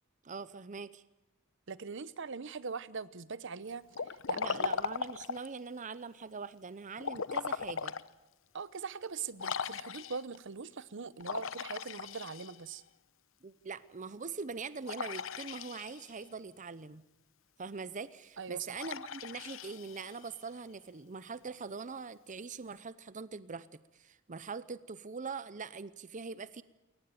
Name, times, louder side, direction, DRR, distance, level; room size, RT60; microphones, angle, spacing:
voice 1, 0.2-1.0 4.3-7.9 13.4-17.0 17.6-26.6, right 5 dB, 40° right, 16 dB, 0.7 m, -42 dB
voice 2, 1.7-4.7 8.5-12.8 18.4-18.8, right 5 dB, 65° right, 17 dB, 0.8 m, -42 dB
Liquid, 3.9-5.6 7.0-8.1 8.6-8.7 9.4-10.4 11.2-12.8 14.9-16.2 18.8-20.4, left 6 dB, 70° left, 0.8 m, -38 dB
22.5 x 19.0 x 9.1 m, 0.99 s
head